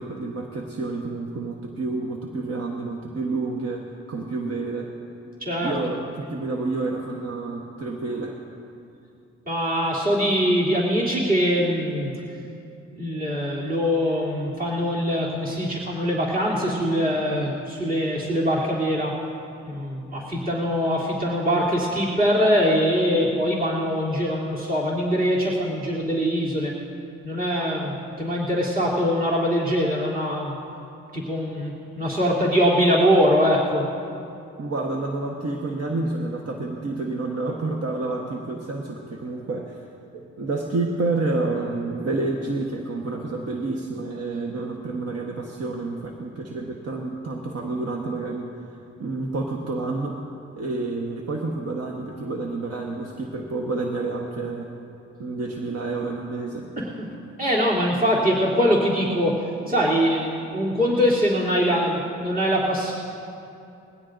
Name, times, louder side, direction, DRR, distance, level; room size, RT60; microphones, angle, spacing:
voice 1, 0.0-4.9 5.6-8.4 34.6-39.8 40.1-48.5 49.0-50.2 50.5-54.7 55.2-56.7, right 3 dB, 55° right, 0 dB, 1.3 m, -29 dB
voice 2, 5.4-5.8 9.5-12.1 13.0-19.1 19.7-26.7 27.2-30.5 31.1-33.9 56.8-57.1 57.4-62.9, equal, 30° right, -6 dB, 3.1 m, -23 dB
21.0 x 16.0 x 2.6 m, 2.7 s
supercardioid pair, 65°, 30 cm